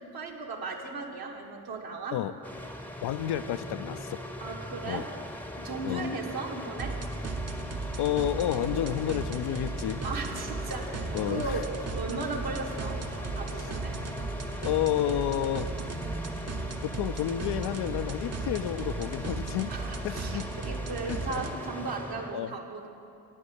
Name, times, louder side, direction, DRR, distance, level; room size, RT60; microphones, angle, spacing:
voice 1, 0.1-2.2 4.4-5.1 5.6-6.9 10.0-11.7 12.0-13.0 13.3-14.0 19.7-22.9, right 3 dB, 55° right, 1 dB, 1.4 m, -36 dB
sound 1, 2.4-22.3, left 1 dB, 5° left, 0.8 m, -39 dB
voice 2, 3.0-4.3 4.9-5.0 5.8-6.1 8.0-10.0 11.1-11.6 13.6-13.7 14.6-15.7 16.8-19.7 20.0-20.5 21.0-21.2 22.3-22.5, left 11 dB, 60° left, 12 dB, 0.5 m, -30 dB
sound 2, 6.8-21.5, right 3 dB, 35° right, 0.8 m, -36 dB
9.4 x 5.4 x 8.1 m, 2.6 s
hypercardioid pair, 40°, 44 cm